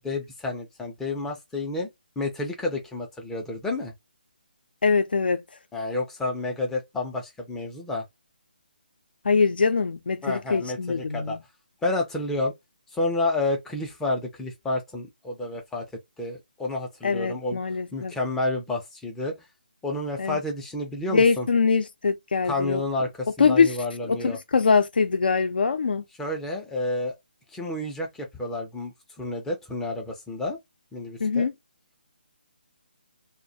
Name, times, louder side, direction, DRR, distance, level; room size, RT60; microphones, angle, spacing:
voice 1, 0.0-1.9 2.2-3.9 5.7-8.0 10.2-11.4 11.8-12.5 12.9-15.9 16.2-17.6 17.9-19.4 19.8-21.5 22.4-24.4 26.2-27.1 27.5-28.9 29.2-30.6 30.9-31.5, left 2 dB, 5° left, 0.4 m, -30 dB
voice 2, 4.8-5.4 9.2-11.4 17.0-18.1 20.2-20.4 21.1-22.8 23.4-23.7 24.0-26.0 31.2-31.5, left 5 dB, 65° left, 0.5 m, -23 dB
2.2 x 2.1 x 2.7 m
figure-of-eight pair, 150°, 5 cm